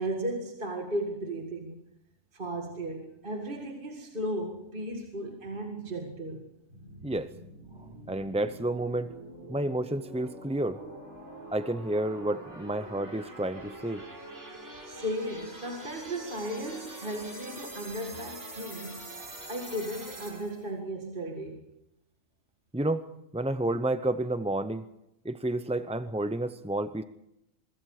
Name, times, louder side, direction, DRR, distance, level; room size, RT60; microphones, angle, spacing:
voice 1, 0.0-1.8 2.3-6.5 14.9-19.0 19.5-21.6, right 1 dB, 40° right, 2 dB, 2.2 m, -35 dB
sound 1, 6.7-20.7, right 1 dB, 60° right, 4.8 m, -45 dB
voice 2, 8.1-9.1 9.5-10.8 11.5-14.0 22.7-23.1 23.3-24.8 25.2-27.0, right 1 dB, 10° right, 11 dB, 0.4 m, -30 dB
24.0 x 22.5 x 4.9 m, 0.83 s
omnidirectional pair, 1.4 m